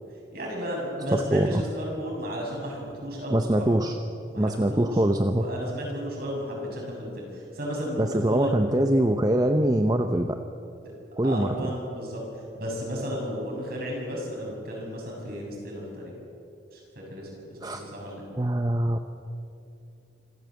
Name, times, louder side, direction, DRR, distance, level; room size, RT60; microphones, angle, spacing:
voice 1, 0.3-3.8 4.3-8.5 10.8-10.9 11.2-12.2 12.5-16.1 16.7-17.3 17.6-18.2, equal, 50° right, -2 dB, 7.2 m, -34 dB
voice 2, 1.1-1.6 3.3-4.0 4.4-5.5 8.0-10.4 11.2-11.6 17.6-17.8 18.4-19.0, right 1 dB, 20° right, 6 dB, 0.7 m, -23 dB
25.5 x 15.0 x 7.8 m, 2.6 s
head